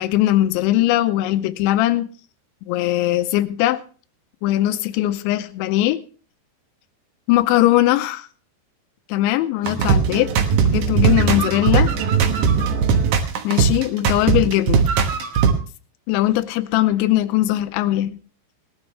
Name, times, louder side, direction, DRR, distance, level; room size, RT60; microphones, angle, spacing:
voice 1, 0.0-2.1 2.7-3.8 4.4-6.0 7.3-8.2 9.1-10.3 10.7-11.9 13.4-14.9 16.1-18.2, left 15 dB, 90° left, 3.1 m, -20 dB
sound 1, 9.6-15.5, right 6 dB, 65° right, 2.2 m, -18 dB
19.0 x 12.0 x 3.2 m
omnidirectional pair, 5.2 m